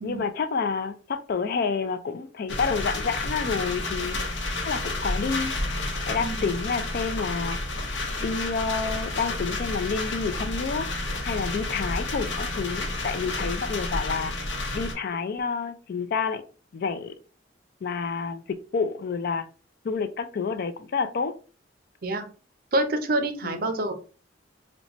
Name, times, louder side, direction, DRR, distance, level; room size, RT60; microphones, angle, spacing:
voice 1, 0.0-4.4 4.6-5.5 6.1-7.6 8.2-10.9 11.2-14.3 14.7-16.4 16.7-17.1 17.8-19.5 19.8-21.3 23.4-23.6, left 5 dB, 55° left, 0.4 m, -29 dB
sound 1, 2.5-14.9, left 2 dB, 80° left, 0.8 m, -30 dB
voice 2, 22.7-23.9, right 1 dB, 55° right, 0.5 m, -27 dB
4.0 x 2.2 x 2.9 m
head